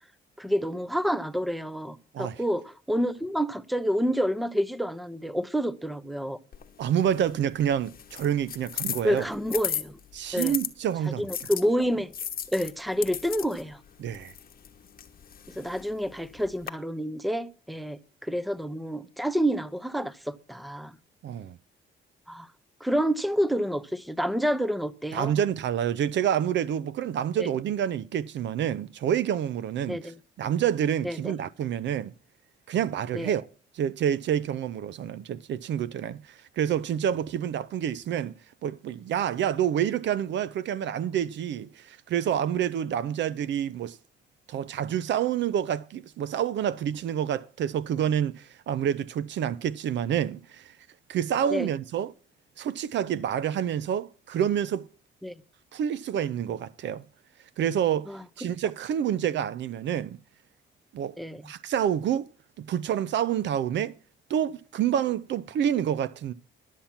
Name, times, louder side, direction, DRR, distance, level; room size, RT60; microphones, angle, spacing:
voice 1, 0.4-6.4 9.0-10.0 10.3-10.6 11.2-12.1 12.5-13.8 15.5-20.9 22.3-22.5 22.8-25.3 27.4-27.5 29.9-30.1 31.0-31.3 33.1-33.3 51.5-51.7 55.2-55.3 58.1-58.2 61.2-61.4, equal, ahead, 0.6 m, -28 dB
sound 1, 6.5-10.7 11.3-16.7, left 8 dB, 45° left, 1.0 m, -37 dB
voice 2, 6.8-9.3 10.1-11.3 14.0-14.3 21.2-21.6 25.1-30.1 30.4-32.1 32.7-33.4 33.7-38.3 38.6-44.0 44.5-50.7 51.1-52.1 52.6-54.8 55.7-57.0 57.6-58.1 58.4-60.2 60.9-61.1 61.4-62.3 62.6-63.9 64.3-66.3, right 9 dB, 65° right, 0.5 m, -28 dB
11.5 x 7.3 x 5.8 m
cardioid pair, 90°, 20 cm